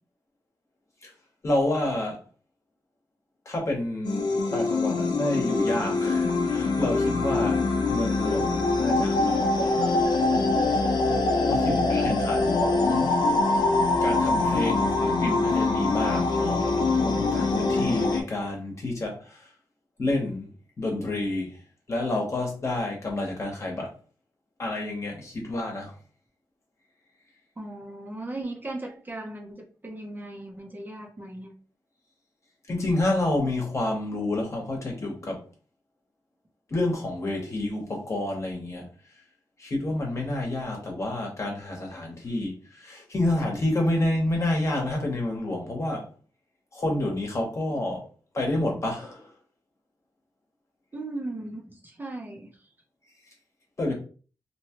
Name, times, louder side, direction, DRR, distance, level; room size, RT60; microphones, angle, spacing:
voice 1, 1.4-2.2 3.4-7.6 7.9-10.3 11.5-13.1 14.0-19.5 20.0-20.5 20.8-21.6 21.9-23.9 24.6-25.9 32.7-35.4 36.7-38.9 39.6-46.1 46.7-48.1 48.3-49.3 53.8-53.9, left 1 dB, 40° left, 1 dB, 1.0 m, -29 dB
sound 1, 4.0-18.2, left 3 dB, 70° left, 0.5 m, -24 dB
voice 2, 11.6-12.5 27.6-31.5 50.9-52.7, right 2 dB, 25° right, 0 dB, 0.7 m, -38 dB
2.9 x 2.3 x 2.9 m, 0.38 s
wide cardioid pair, 95°, 8 cm